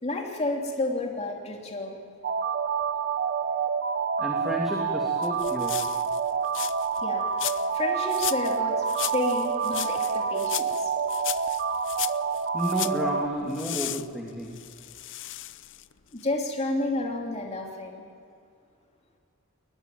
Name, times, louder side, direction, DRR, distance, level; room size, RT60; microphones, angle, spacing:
voice 1, 0.0-2.0 7.0-7.3 7.7-8.8 9.1-10.9 16.1-18.1, left 2 dB, 30° left, 0 dB, 3.0 m, -30 dB
sound 1, 2.2-13.3, right 6 dB, 45° right, 1.1 m, -28 dB
voice 2, 4.2-5.8 7.4-7.5 12.5-14.5, equal, ahead, -2 dB, 2.7 m, -31 dB
sound 2, 5.2-7.0 7.4-7.8 8.1-8.6 8.9-13.0 13.5-15.9 16.2-16.3, left 15 dB, 55° left, 0.6 m, -35 dB
21.5 x 20.0 x 9.3 m, 2.4 s
head